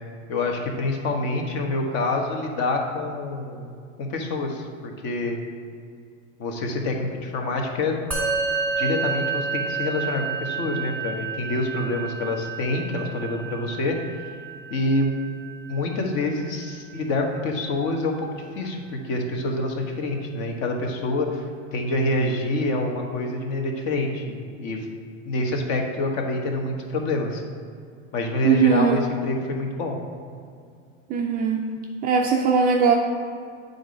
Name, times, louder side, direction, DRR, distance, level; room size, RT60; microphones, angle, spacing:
voice 1, 0.3-5.4 6.4-7.9 8.8-14.0 14.7-15.1 15.7-21.4 21.7-24.9 25.2-27.4 28.1-30.0, left 2 dB, 45° left, 2 dB, 1.3 m, -26 dB
Musical instrument, 8.1-17.6, right 5 dB, 5° left, 1.7 m, -31 dB
voice 2, 28.4-29.0 31.1-31.6 32.0-32.9, right 6 dB, 25° right, 1 dB, 0.3 m, -19 dB
7.8 x 4.0 x 5.2 m, 2.2 s
hypercardioid pair, 125°, 38 cm